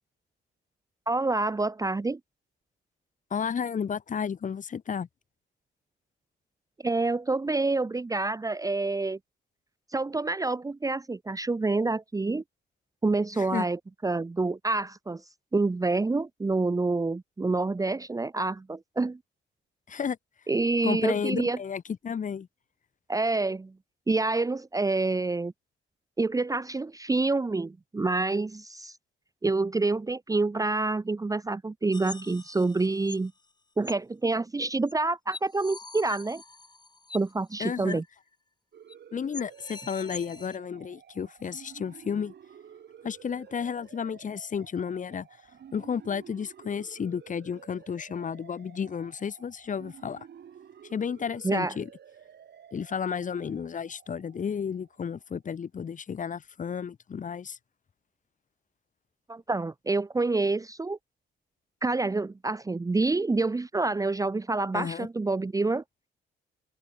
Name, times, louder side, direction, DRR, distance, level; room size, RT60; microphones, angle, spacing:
voice 1, 1.1-2.2 6.8-9.2 9.9-12.4 13.0-15.2 15.5-19.2 20.5-21.6 23.1-23.7 24.1-25.5 26.2-29.0 29.4-33.3 33.8-36.4 37.1-38.0 51.4-51.7 59.3-61.0 61.8-65.8, right 3 dB, 15° right, 0.8 m, -27 dB
voice 2, 3.3-5.1 13.4-13.7 19.9-20.2 20.8-22.5 37.6-38.0 39.1-42.3 43.0-45.3 45.7-50.3 50.9-51.9 52.7-57.6 64.7-65.1, left 7 dB, 40° left, 1.1 m, -32 dB
sound 1, 31.9-33.3 33.8-33.9 34.9-35.0 35.3-37.3 37.9-38.1 38.3-38.4 38.9-39.0 39.3-40.6, left 3 dB, 20° left, 3.3 m, -43 dB
sound 2, 38.7-55.1, right 8 dB, 55° right, 6.8 m, -52 dB
cardioid pair, 90°, 20 cm